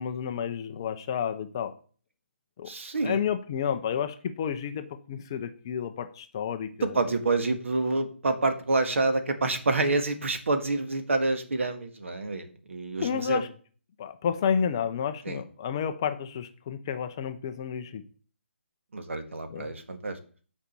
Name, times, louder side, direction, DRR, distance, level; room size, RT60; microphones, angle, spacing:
voice 1, 0.0-1.7 2.6-2.7 3.0-7.0 13.0-13.5 14.0-18.0 19.5-19.7, left 7 dB, 20° left, 9 dB, 0.5 m, -30 dB
voice 2, 2.7-3.2 6.8-13.4 15.2-15.4 18.9-20.2, right 3 dB, 75° right, 7 dB, 1.8 m, -28 dB
7.2 x 5.2 x 6.8 m, 0.42 s
hypercardioid pair, 175°, 7 cm